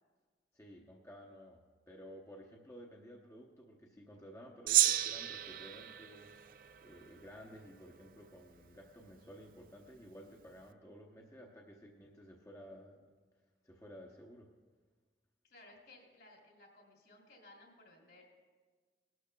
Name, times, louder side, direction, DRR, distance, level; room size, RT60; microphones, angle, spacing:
voice 1, 0.5-1.6 1.9-13.0 13.6-14.5, equal, 15° left, -1 dB, 0.8 m, -54 dB
Gong, 4.7-7.3, right 12 dB, 50° right, 0.3 m, -33 dB
voice 2, 15.4-18.2, left 2 dB, 65° left, -1 dB, 2.7 m, -59 dB
18.5 x 12.0 x 2.2 m, 1.4 s
head